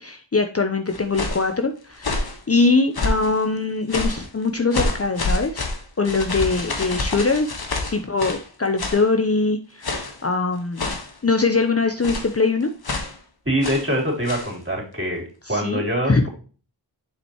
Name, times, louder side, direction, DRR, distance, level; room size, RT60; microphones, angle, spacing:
voice 1, 0.0-5.6 6.0-7.5 7.9-10.9 11.2-12.7 15.5-16.3, left 3 dB, 30° left, 7 dB, 0.8 m, -22 dB
sound 1, 0.9-1.5 2.0-2.4 2.9-3.3 3.9-4.3 4.7-8.5 8.8-9.1 9.8-10.2 10.8-11.2 12.0-12.4 12.8-13.2 13.6-13.9 14.2-14.5, left 2 dB, 55° left, 1.5 m, -27 dB
voice 2, 13.5-15.2 15.5-16.3, equal, 30° right, -2 dB, 3.8 m, -24 dB
7.2 x 5.2 x 3.0 m, 0.38 s
cardioid pair, 40°, 45 cm